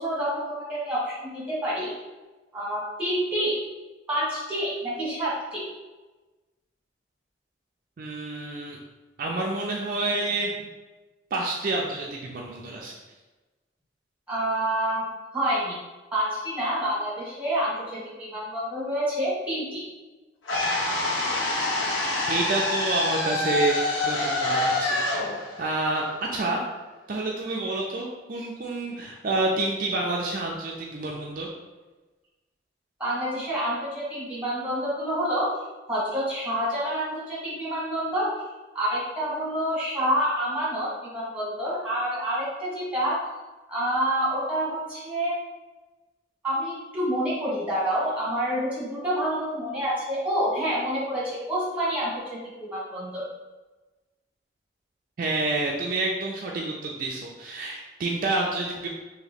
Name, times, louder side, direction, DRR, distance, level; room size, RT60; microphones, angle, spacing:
voice 1, 0.0-1.9 2.5-3.6 4.1-5.6 14.3-15.1 15.3-15.8 16.1-19.8 33.0-38.3 38.7-43.2 43.7-45.3 46.4-53.2, equal, 5° right, -8 dB, 1.2 m, -28 dB
voice 2, 8.0-8.8 9.2-10.5 11.3-12.9 22.3-25.0 25.3-26.1 26.3-26.6 27.1-31.5 55.2-58.9, right 2 dB, 45° right, -1 dB, 0.4 m, -28 dB
sound 1, 20.5-26.6, left 2 dB, 85° left, 0.9 m, -26 dB
2.9 x 2.8 x 4.1 m, 1.2 s
head